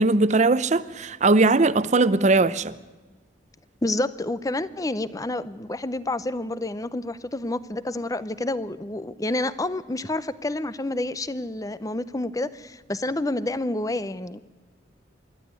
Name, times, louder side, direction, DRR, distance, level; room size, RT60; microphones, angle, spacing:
voice 1, 0.0-2.7, right 3 dB, 40° right, 16 dB, 0.7 m, -19 dB
voice 2, 3.8-14.5, left 2 dB, 20° left, 16 dB, 0.7 m, -29 dB
26.0 x 11.5 x 9.5 m, 1.2 s
head